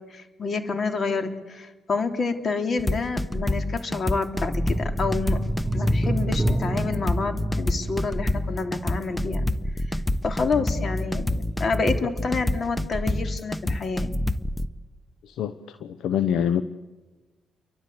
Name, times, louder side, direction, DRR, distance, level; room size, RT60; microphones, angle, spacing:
voice 1, 0.1-5.4 5.7-9.5 9.9-10.0 10.2-14.1, left 4 dB, 45° left, 7 dB, 3.4 m, -28 dB
sound 1, 2.8-14.7, left 1 dB, 10° left, 1.3 m, -27 dB
sound 2, 4.7-9.1 9.4-9.5, right 1 dB, 15° right, 3.2 m, -29 dB
voice 2, 15.2-16.6, left 9 dB, 70° left, 14 dB, 0.8 m, -26 dB
29.0 x 23.5 x 8.3 m, 1.2 s
hypercardioid pair, 45°, 0 cm